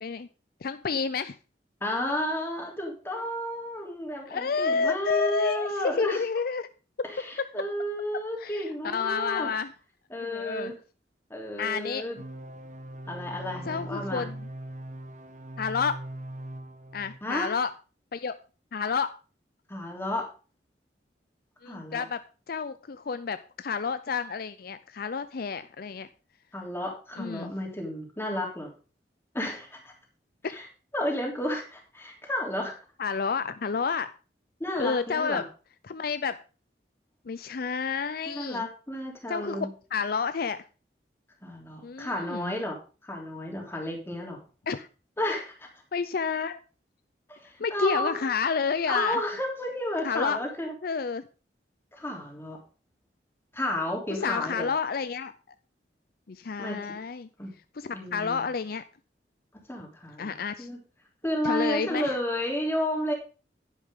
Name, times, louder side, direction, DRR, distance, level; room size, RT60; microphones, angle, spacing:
voice 1, 0.6-1.4 4.3-6.7 7.4-7.5 8.4-9.7 10.3-10.7 11.6-12.1 13.7-14.4 15.6-16.0 16.9-17.7 18.1-18.4 18.7-19.1 21.6-22.2 22.5-26.1 27.2-27.5 30.4-30.6 33.0-34.1 34.8-35.4 35.8-36.4 37.3-38.7 39.3-40.6 41.8-42.6 44.7-44.9 45.9-46.6 47.6-49.2 50.0-50.4 50.8-51.2 54.1-55.3 56.3-57.3 57.8-58.8 60.2-60.7 61.4-62.2, left 5 dB, 60° left, 13 dB, 0.5 m, -30 dB
voice 2, 1.8-6.2 7.0-9.5 10.1-10.8 11.3-12.2 13.1-14.3 17.2-17.5 19.7-20.3 21.7-22.0 26.5-28.7 29.3-29.9 30.4-30.6 30.9-32.7 34.6-35.4 38.3-39.7 41.4-42.8 43.0-44.4 45.2-45.7 47.3-48.2 48.9-50.7 52.0-52.6 53.5-54.7 56.6-56.9 57.4-57.5 57.9-58.4 59.7-60.8 61.2-63.1, left 1 dB, 15° left, 0 dB, 3.3 m, -32 dB
sound 1, 12.2-17.2, right 1 dB, 45° right, 1.2 m, -40 dB
11.0 x 10.5 x 3.7 m, 0.34 s
head